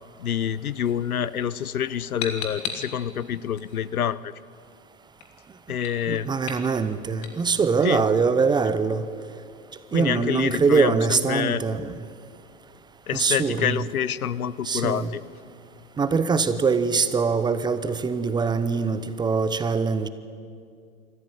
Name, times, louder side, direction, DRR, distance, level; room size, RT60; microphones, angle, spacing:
voice 1, 0.2-4.3 5.7-6.3 7.8-8.0 9.9-11.6 13.1-15.2, left 9 dB, 85° left, 18 dB, 0.9 m, -27 dB
sound 1, 0.8-10.7, left 6 dB, 45° left, 3.1 m, -41 dB
voice 2, 6.1-9.0 9.9-11.9 13.1-13.8 14.6-15.1 16.0-20.1, right 5 dB, 10° right, 12 dB, 0.7 m, -23 dB
26.0 x 14.5 x 9.8 m, 2.3 s
hypercardioid pair, 120°, 42 cm